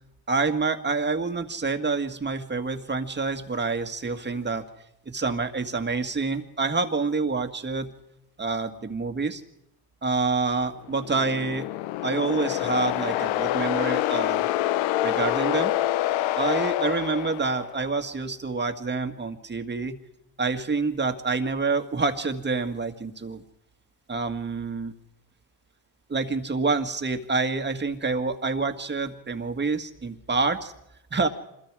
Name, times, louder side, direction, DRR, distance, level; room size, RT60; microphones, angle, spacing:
voice 1, 0.3-4.6 5.1-7.9 8.4-9.4 10.0-11.7 12.0-14.5 15.0-15.7 16.4-20.0 20.4-23.4 24.1-24.9 26.1-30.7 31.1-31.3, right 4 dB, 20° right, 7 dB, 1.9 m, -27 dB
sound 1, 10.8-17.9, left 14 dB, 75° left, 0.8 m, -26 dB
26.0 x 21.5 x 4.9 m, 0.81 s
supercardioid pair, 90°, 47 cm